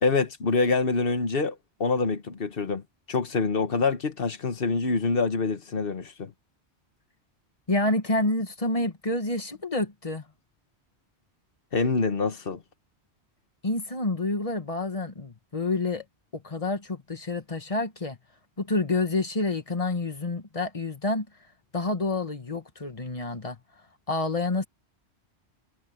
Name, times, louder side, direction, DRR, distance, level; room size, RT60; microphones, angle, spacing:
voice 1, 0.0-6.3 11.7-12.6, left 4 dB, 55° left, 1.4 m, -26 dB
voice 2, 7.7-10.2 13.6-16.0 16.3-18.2 18.6-21.3 21.7-23.6 24.1-24.6, left 2 dB, 30° left, 1.7 m, -28 dB
omnidirectional pair, 1.1 m